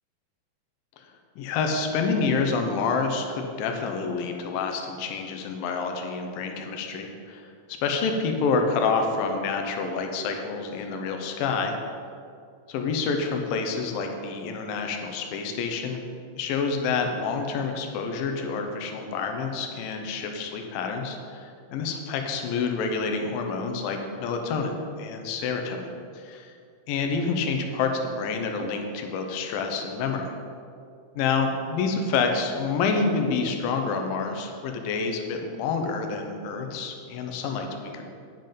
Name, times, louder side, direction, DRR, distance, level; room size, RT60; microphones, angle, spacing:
voice 1, 1.4-7.5 7.8-11.8 12.7-16.0 16.4-24.7 25.0-25.8 26.2-26.5 26.9-27.9 28.2-30.3 31.2-38.1, left 4 dB, 75° left, 4 dB, 2.5 m, -28 dB
9.3 x 7.7 x 5.3 m, 2.3 s
omnidirectional pair, 4.3 m